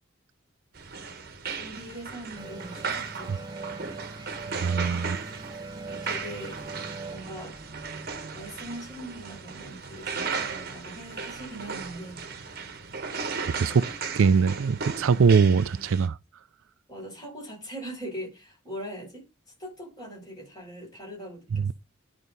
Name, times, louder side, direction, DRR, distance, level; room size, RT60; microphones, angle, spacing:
sound 1, 0.7-16.1, right 5 dB, 50° right, 1.2 m, -36 dB
voice 1, 1.5-3.5 5.9-6.6 7.1-7.5 8.3-12.2 13.5-13.8 16.9-19.2 19.6-21.7, right 1 dB, 20° left, 6.6 m, -41 dB
sound 2, 2.4-9.6, right 3 dB, 20° right, 0.5 m, -42 dB
voice 2, 4.5-5.2 13.6-13.8 14.2-16.2 21.5-21.6, right 5 dB, 90° right, 0.4 m, -22 dB
11.0 x 4.9 x 4.1 m
head